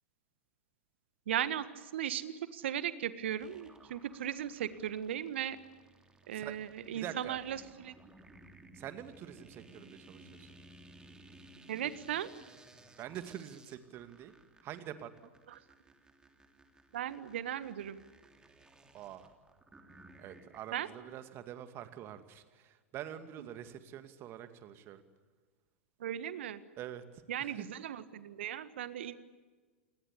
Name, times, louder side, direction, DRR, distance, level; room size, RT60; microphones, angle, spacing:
voice 1, 1.3-5.6 6.3-7.9 11.7-12.3 16.9-18.0 20.7-20.9 26.0-26.6 27.3-29.1, right 10 dB, 60° right, 14 dB, 1.6 m, -37 dB
sound 1, 3.4-20.9, right 2 dB, 10° right, 3.2 m, -58 dB
voice 2, 6.9-7.4 8.7-10.5 13.0-14.3 14.6-15.3 18.9-19.3 20.2-25.0 26.8-27.7, right 11 dB, 35° right, 10 dB, 2.3 m, -46 dB
29.0 x 20.5 x 8.3 m, 1.4 s
figure-of-eight pair, 95°, 7 cm